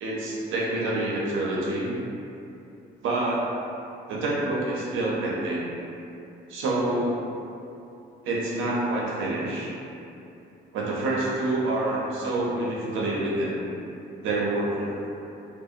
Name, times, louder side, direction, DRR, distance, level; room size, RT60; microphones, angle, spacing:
voice 1, 0.0-1.9 3.0-3.5 4.1-5.7 6.5-7.2 8.2-9.7 10.7-13.7 14.2-15.0, right 2 dB, 85° right, -5 dB, 0.6 m, -27 dB
2.6 x 2.0 x 2.4 m, 2.7 s
cardioid pair, 90°, 20 cm